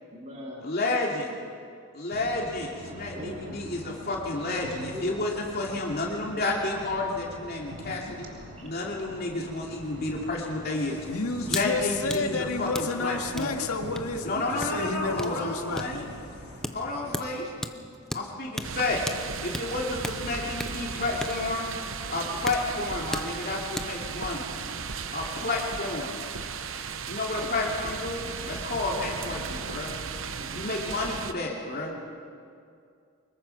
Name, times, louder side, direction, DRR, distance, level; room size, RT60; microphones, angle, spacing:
voice 1, 0.1-0.7 2.8-4.6 4.9-5.3 7.8-8.1 8.5-8.8 16.6-18.1 20.2-20.3 20.7-21.4 24.0-24.8 28.1-28.5 29.2-29.3 29.6-31.0 31.7-32.3, equal, 30° right, -3 dB, 3.3 m, -46 dB
voice 2, 0.6-1.3 1.9-8.3 8.6-11.0 11.5-13.6 14.2-16.0 16.7-17.5 18.1-19.0 19.4-21.7 22.1-24.4 25.1-26.1 27.1-30.0 30.5-31.9, left 2 dB, 45° left, -2 dB, 2.8 m, -31 dB
sound 1, 2.1-17.3, equal, 80° right, 6.5 m, -44 dB
voice 3, 11.1-15.9, left 3 dB, 85° left, 4 dB, 2.0 m, -30 dB
sound 2, 11.4-11.7 12.0-24.0, left 1 dB, ahead, 0.7 m, -38 dB
sound 3, 18.6-31.3, right 6 dB, 60° right, 0.9 m, -36 dB
24.5 x 21.5 x 5.9 m, 2.3 s
head